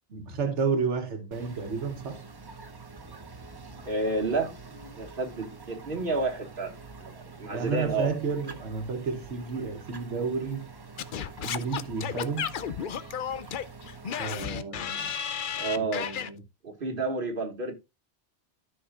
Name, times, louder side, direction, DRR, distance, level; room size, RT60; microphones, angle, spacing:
voice 1, 0.1-2.2 7.5-10.7 11.4-12.5 14.2-15.1 15.8-16.4, right 5 dB, 90° right, 1.4 m, -31 dB
sound 1, 1.3-14.4, right 4 dB, 25° right, 0.7 m, -46 dB
voice 2, 3.8-4.5 5.0-8.1 15.5-16.1 16.6-17.7, right 3 dB, 50° right, 2.0 m, -30 dB
Singing / Scratching (performance technique), 11.0-16.3, left 8 dB, 55° left, 0.7 m, -33 dB
13.0 x 5.8 x 2.4 m
omnidirectional pair, 1.2 m